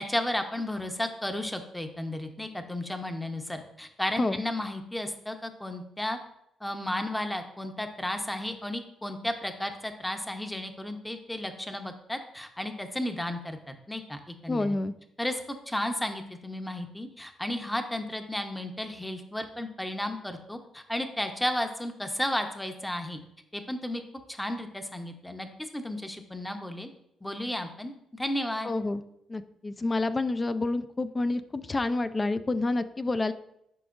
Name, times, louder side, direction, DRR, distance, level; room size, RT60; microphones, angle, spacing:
voice 1, 0.0-6.2 6.6-14.8 15.2-23.2 23.5-24.0 24.3-25.5 25.7-26.9 27.2-28.7, left 1 dB, 5° left, 6 dB, 0.8 m, -33 dB
voice 2, 14.5-14.9 28.6-29.0 29.3-33.3, left 2 dB, 25° left, 12 dB, 0.4 m, -28 dB
10.5 x 4.9 x 2.5 m, 0.79 s
cardioid pair, 90°, 0 cm